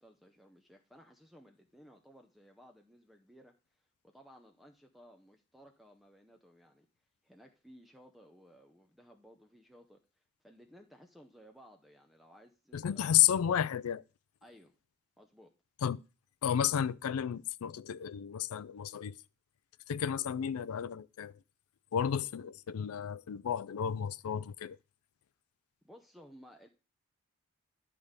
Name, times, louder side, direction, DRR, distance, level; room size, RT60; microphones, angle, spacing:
voice 1, 0.0-6.9 7.2-13.1 14.4-14.7 15.2-15.5 25.8-26.7, equal, ahead, 0.6 m, -58 dB
voice 2, 12.7-14.0 15.8-16.0 16.4-19.2 19.9-21.4 21.9-24.8, left 9 dB, 80° left, 0.4 m, -32 dB
11.0 x 3.6 x 6.5 m
head